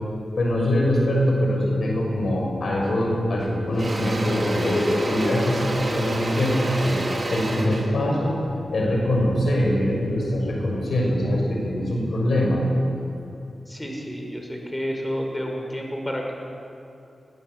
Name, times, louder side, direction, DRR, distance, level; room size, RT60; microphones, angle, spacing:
voice 1, 0.3-7.0 7.3-8.4 8.7-12.6, left 1 dB, 70° left, -1 dB, 6.2 m, -23 dB
Engine / Drill, 2.8-3.1 3.4-9.5, right 1 dB, 40° right, 3.6 m, -29 dB
voice 2, 13.7-16.3, equal, 15° left, 1 dB, 5.5 m, -30 dB
20.5 x 18.5 x 8.1 m, 2.7 s
cardioid pair, 45°, 0 cm